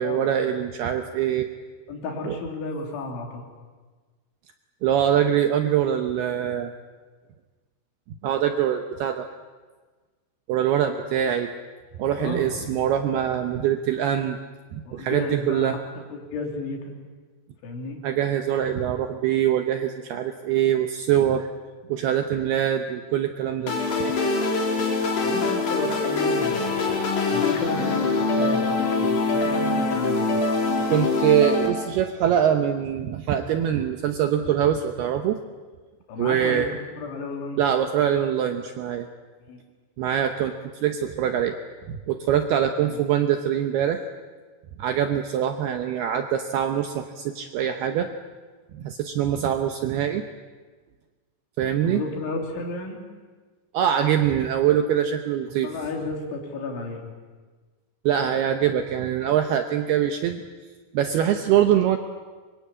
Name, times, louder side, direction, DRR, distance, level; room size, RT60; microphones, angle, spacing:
voice 1, 0.0-1.5 2.2-2.4 4.8-6.7 8.2-9.3 10.5-11.5 12.0-14.4 14.7-15.8 18.0-21.5 21.9-23.7 30.9-35.4 36.2-36.7 37.6-39.1 40.0-40.5 40.8-41.6 42.1-44.0 44.8-48.1 48.7-50.2 51.6-52.0 53.7-55.7 58.1-60.4 60.9-62.0, right 10 dB, 75° right, 6 dB, 2.4 m, -23 dB
voice 2, 1.9-3.4 12.2-12.8 14.9-16.9 17.6-18.0 23.6-23.9 25.2-26.8 27.3-30.4 30.9-31.0 36.1-36.7 37.0-37.6 39.5-39.6 42.9-43.0 51.8-53.0 55.6-57.0, left 3 dB, 70° left, 2 dB, 5.6 m, -33 dB
sound 1, 23.7-31.7, left 3 dB, 50° left, 5.4 m, -23 dB
24.5 x 23.0 x 8.6 m, 1.4 s
omnidirectional pair, 5.7 m